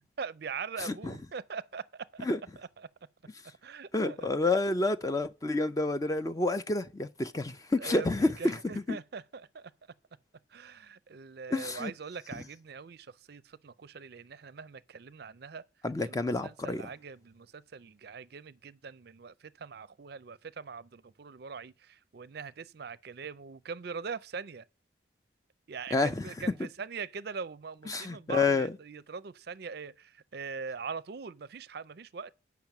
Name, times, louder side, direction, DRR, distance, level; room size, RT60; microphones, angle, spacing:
voice 1, 0.0-2.3 2.6-2.9 3.6-4.5 7.8-9.7 10.5-15.6 16.0-24.7 25.7-32.3, right 5 dB, 55° right, 0.4 m, -42 dB
voice 2, 0.8-1.1 2.2-2.4 3.9-8.6 8.9-9.0 11.5-11.9 15.8-16.8 25.9-26.3 27.9-28.7, left 2 dB, 15° left, 0.4 m, -29 dB
8.9 x 5.9 x 5.8 m
head